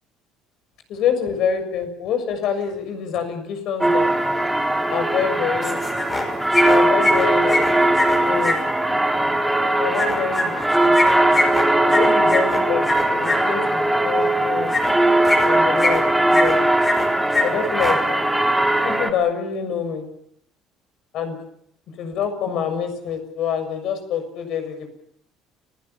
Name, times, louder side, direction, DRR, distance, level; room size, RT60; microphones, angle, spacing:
voice 1, 0.9-4.1 4.9-5.8 6.7-7.6 8.3-8.6 9.8-10.5 10.8-10.9 11.8-14.7 15.4-16.6 17.4-18.0 18.8-20.0 21.1-21.4 22.0-24.9, left 7 dB, 60° left, 8 dB, 6.7 m, -26 dB
sound 1, 3.8-19.1, right 1 dB, 5° right, 2.4 m, -19 dB
sound 2, 5.6-6.3 6.5-8.5 9.9-13.4 14.7-14.9 15.2-16.0 16.3-17.1 17.3-17.4 17.7-17.9, left 3 dB, 20° left, 5.7 m, -23 dB
30.0 x 18.0 x 7.3 m, 0.69 s
cardioid pair, 140°, 0 cm